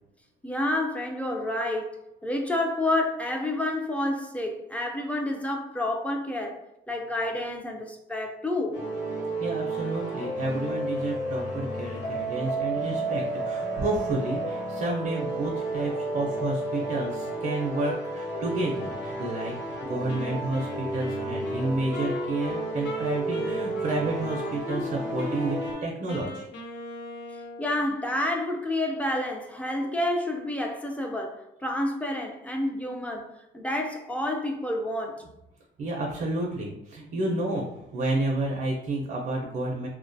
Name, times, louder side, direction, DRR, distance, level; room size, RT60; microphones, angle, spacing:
voice 1, 0.4-2.0 2.2-6.6 6.9-8.8 27.6-35.2, left 1 dB, 5° left, 0.4 m, -29 dB
sound 1, 8.7-25.7, right 2 dB, 90° left, 1.2 m, -32 dB
voice 2, 9.4-19.5 19.8-26.5 35.8-39.9, right 2 dB, 50° right, 0.5 m, -30 dB
Wind instrument woodwind instrument, 20.1-24.9 25.2-27.8, left 2 dB, 65° left, 0.5 m, -39 dB
2.4 x 2.2 x 2.5 m
cardioid pair, 90°, 20 cm